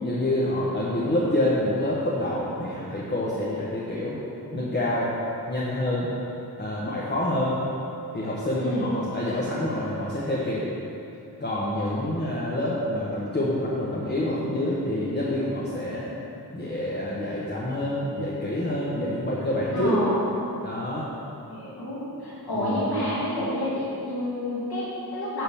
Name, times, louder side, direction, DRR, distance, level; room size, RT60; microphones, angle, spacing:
voice 1, 0.0-4.2 4.5-5.1 5.5-6.1 6.6-7.6 8.1-10.6 11.4-16.1 16.5-20.0 20.6-21.0 22.5-22.8, left 1 dB, 25° left, -7 dB, 1.2 m, -27 dB
voice 2, 8.6-9.0 19.7-20.3 21.5-25.4, left 1 dB, 75° left, -9 dB, 2.2 m, -29 dB
10.0 x 3.9 x 7.0 m, 2.8 s
wide cardioid pair, 100°, 38 cm